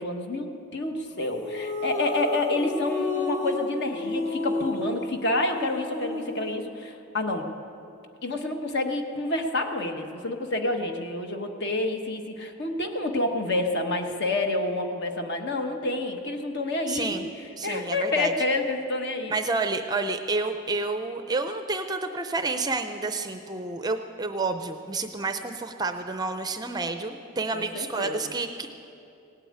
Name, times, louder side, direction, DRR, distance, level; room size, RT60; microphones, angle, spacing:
voice 1, 0.0-7.5 8.2-17.2 17.6-19.3 27.5-28.2, left 2 dB, 50° left, 4 dB, 1.2 m, -28 dB
sound 1, 1.2-6.5, left 2 dB, 35° left, 1.3 m, -32 dB
voice 2, 16.9-17.2 17.6-18.3 19.3-28.7, right 3 dB, 20° right, 8 dB, 0.5 m, -29 dB
17.5 x 8.9 x 8.7 m, 2.6 s
head